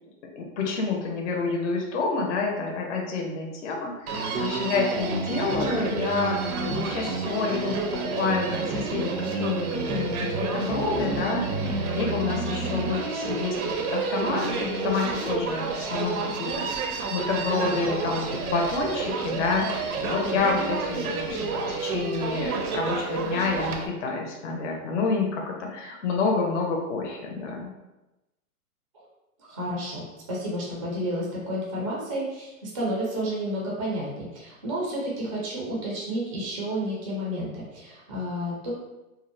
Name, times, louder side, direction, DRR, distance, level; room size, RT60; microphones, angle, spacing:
voice 1, 0.4-6.4 6.9-27.7, left 4 dB, 55° left, 1 dB, 0.6 m, -28 dB
Human voice, 4.1-23.9, right 4 dB, 75° right, 0.6 m, -29 dB
voice 2, 6.5-7.1 29.5-38.7, equal, 25° right, -5 dB, 0.4 m, -31 dB
2.7 x 2.0 x 2.5 m, 1.0 s
hypercardioid pair, 150°, 44 cm